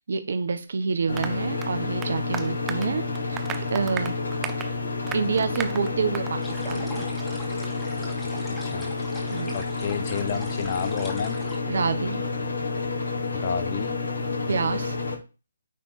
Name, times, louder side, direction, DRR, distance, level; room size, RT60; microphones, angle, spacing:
voice 1, 0.0-3.4 3.7-4.2 5.1-6.4 6.7-7.1 9.3-9.6 11.7-12.2 14.4-15.0, right 5 dB, 60° right, 8 dB, 1.1 m, -27 dB
sound 1, 1.1-15.2, left 3 dB, 75° left, 3.9 m, -30 dB
Applause, 1.2-6.4 6.7-6.8 7.2-7.3 7.6-7.7, right 10 dB, 15° right, 0.5 m, -37 dB
sound 2, 6.4-11.6, left 1 dB, 10° left, 2.0 m, -43 dB
voice 2, 8.6-8.9 9.5-11.4 13.3-13.9, left 7 dB, 40° left, 11 dB, 0.9 m, -31 dB
9.6 x 3.6 x 4.3 m, 0.30 s
figure-of-eight pair, 150°, 0 cm